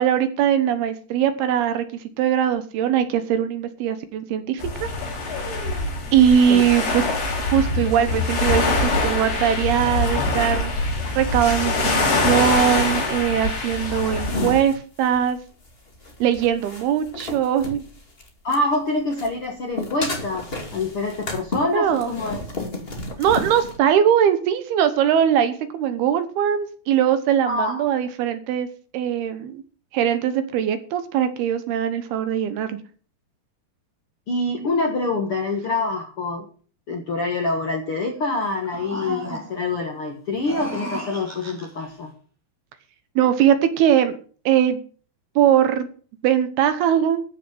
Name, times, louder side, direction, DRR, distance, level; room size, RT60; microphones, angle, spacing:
voice 1, 0.0-1.9 2.2-4.9 6.1-7.0 7.4-10.7 11.2-15.4 16.2-17.8 21.7-22.1 23.2-28.7 28.9-29.6 29.9-32.8 43.2-44.2 44.5-44.8 45.4-45.9 46.2-47.2, right 9 dB, 75° right, 11 dB, 2.8 m, -21 dB
sound 1, 4.6-14.6, left 2 dB, 75° left, 6.8 m, -24 dB
sound 2, 14.3-18.8 19.1-23.8, left 1 dB, 25° left, 1.3 m, -32 dB
voice 2, 18.4-22.4 27.4-27.9 34.3-36.5 36.9-42.1, left 2 dB, 55° left, 2 dB, 1.5 m, -26 dB
sound 3, 38.4-39.8 40.3-41.9, right 1 dB, 5° right, 1.6 m, -34 dB
14.0 x 6.6 x 7.8 m, 0.42 s
omnidirectional pair, 5.0 m